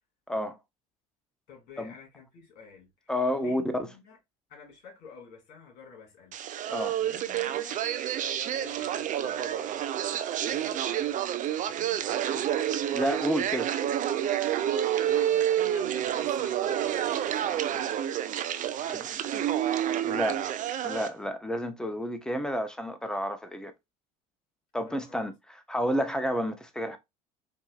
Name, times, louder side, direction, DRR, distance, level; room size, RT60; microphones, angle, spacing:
voice 1, 1.5-4.2 4.5-6.3 7.0-7.8 8.5-9.9 10.3-11.2 11.6-12.4 14.9-18.0 18.6-20.5 24.9-25.2, left 5 dB, 60° left, 2.4 m, -50 dB
voice 2, 3.1-3.6 6.7-6.9 12.9-13.7 18.9-19.0 20.0-20.4 20.8-23.7 24.7-25.3 25.7-27.0, equal, 5° left, 0.8 m, -30 dB
sound 1, 6.3-21.1, right 11 dB, 45° right, 0.5 m, -29 dB
4.6 x 2.6 x 2.4 m
hypercardioid pair, 80°, 19 cm